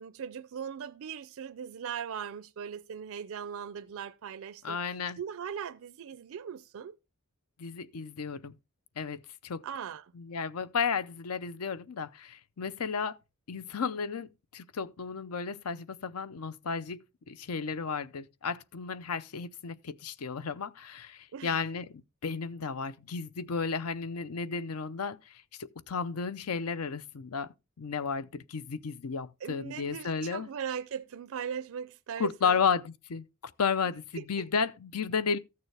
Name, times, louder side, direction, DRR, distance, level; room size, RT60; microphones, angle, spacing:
voice 1, 0.0-7.0 9.6-10.1 21.3-21.6 29.4-32.6 34.2-34.5, right 7 dB, 65° right, 0.4 m, -39 dB
voice 2, 4.6-5.2 7.6-8.5 9.0-9.6 10.1-13.2 13.5-17.0 17.3-30.5 32.2-35.4, left 5 dB, 75° left, 0.6 m, -33 dB
14.0 x 6.7 x 3.3 m
head